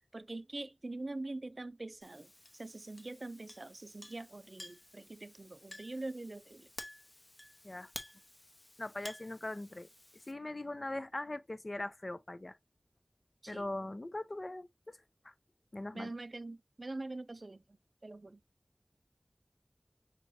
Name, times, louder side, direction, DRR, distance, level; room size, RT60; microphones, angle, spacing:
voice 1, 0.1-2.3 2.6-6.7 13.4-13.6 15.9-17.6 18.0-18.4, right 2 dB, 65° right, 0.4 m, -44 dB
Chink clink, 2.0-10.3, left 1 dB, 35° left, 0.9 m, -52 dB
voice 2, 8.8-9.9 10.3-12.6 13.5-15.0 15.2-15.3 15.7-16.1, left 2 dB, 55° left, 0.5 m, -41 dB
6.3 x 2.9 x 2.7 m
wide cardioid pair, 50°, 0 cm